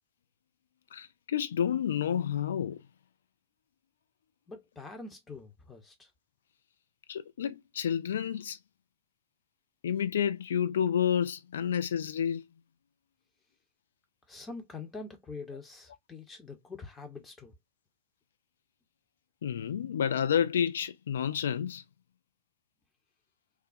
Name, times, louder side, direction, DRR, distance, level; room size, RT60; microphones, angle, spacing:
voice 1, 0.9-2.8 7.1-8.6 9.8-12.4 19.4-21.8, left 8 dB, 65° left, 0.3 m, -30 dB
voice 2, 4.5-6.1 14.3-17.6, left 4 dB, 15° left, 0.8 m, -44 dB
3.5 x 2.2 x 2.5 m
figure-of-eight pair, 90°, 0 cm